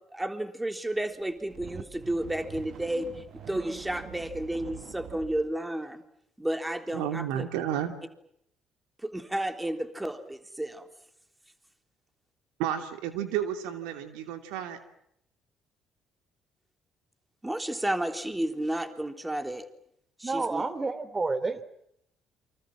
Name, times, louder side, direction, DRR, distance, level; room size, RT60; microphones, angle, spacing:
voice 1, 0.1-3.1 3.3-6.0 6.4-7.5 9.0-10.9 17.4-19.6 20.2-20.6, right 1 dB, 10° right, 8 dB, 3.5 m, -32 dB
sound 1, 1.2-5.5, right 8 dB, 55° right, 2.3 m, -45 dB
voice 2, 6.9-7.9 12.6-14.8, right 10 dB, 75° right, 8 dB, 2.6 m, -31 dB
voice 3, 20.2-21.6, right 3 dB, 25° right, 14 dB, 3.3 m, -29 dB
28.5 x 26.0 x 7.5 m, 0.75 s
hypercardioid pair, 50°, 0 cm